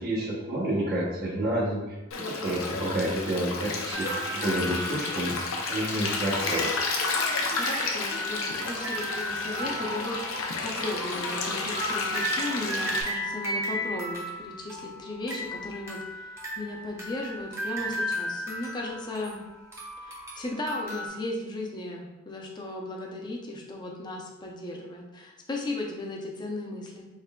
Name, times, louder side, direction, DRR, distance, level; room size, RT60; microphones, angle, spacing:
voice 1, 0.0-2.0 2.3-5.4 5.7-6.7, right 1 dB, 50° right, -6 dB, 0.8 m, -29 dB
Stream, 2.1-13.0, left 3 dB, 85° left, 0.6 m, -31 dB
sound 1, 3.9-5.9 6.4-21.1, equal, 15° right, 0.7 m, -35 dB
voice 2, 7.5-19.4 20.0-27.1, left 2 dB, 20° left, -1 dB, 0.5 m, -36 dB
3.6 x 3.2 x 2.2 m, 1.1 s
head